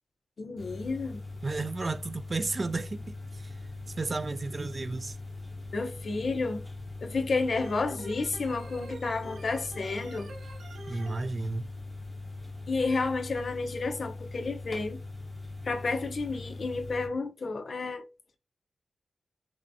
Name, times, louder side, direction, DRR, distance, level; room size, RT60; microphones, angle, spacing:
voice 1, 0.4-1.2 5.7-6.6 7.0-10.3 12.7-15.0 15.7-18.1, left 3 dB, 55° left, 0.7 m, -31 dB
sound 1, 0.6-17.1, left 2 dB, 5° left, 1.0 m, -41 dB
voice 2, 1.4-3.6 4.0-5.2 10.9-11.7, right 3 dB, 35° right, 0.3 m, -33 dB
Organ, 7.5-11.2, right 3 dB, 80° right, 0.8 m, -46 dB
5.6 x 2.2 x 2.7 m
wide cardioid pair, 125°, 0 cm